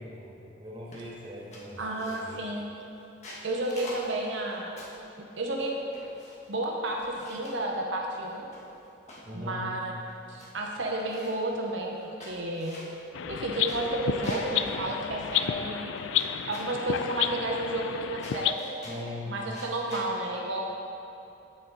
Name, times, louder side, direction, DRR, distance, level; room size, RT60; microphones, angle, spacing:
voice 1, 0.0-2.4 9.3-9.7 18.8-19.5, left 1 dB, 25° right, -3 dB, 1.2 m, -41 dB
sound 1, 0.9-1.2 1.5-2.5 3.0-5.1 5.6-6.5 6.8-7.6 8.3-9.3 9.8-9.9 10.1-10.5 10.8-11.5 12.0-14.6 14.9-15.0 15.2-16.2 16.5-16.8 17.6-18.0 18.2-19.1 19.5-20.1, left 1 dB, 40° left, 1.6 m, -46 dB
voice 2, 1.8-2.7 3.4-4.7 5.2-5.8 6.5-8.5 9.3-9.9 10.3-12.8 13.3-15.9 16.5-18.7 19.3-20.7, right 1 dB, 80° right, 0 dB, 1.0 m, -32 dB
sound 2, 13.1-18.5, left 9 dB, 85° left, 0.3 m, -31 dB
8.4 x 7.7 x 4.0 m, 2.9 s
head